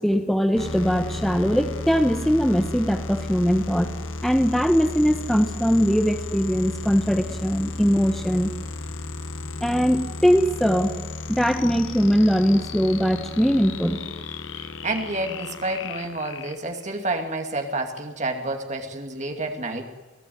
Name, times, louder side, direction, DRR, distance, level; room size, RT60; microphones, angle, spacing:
voice 1, 0.0-3.9 4.2-8.5 9.6-10.9 11.3-14.0, equal, ahead, 6 dB, 1.3 m, -21 dB
sound 1, 0.5-17.0, left 3 dB, 85° left, 1.5 m, -34 dB
voice 2, 14.5-19.9, right 2 dB, 35° right, 4 dB, 2.5 m, -29 dB
28.5 x 16.5 x 9.4 m, 1.2 s
head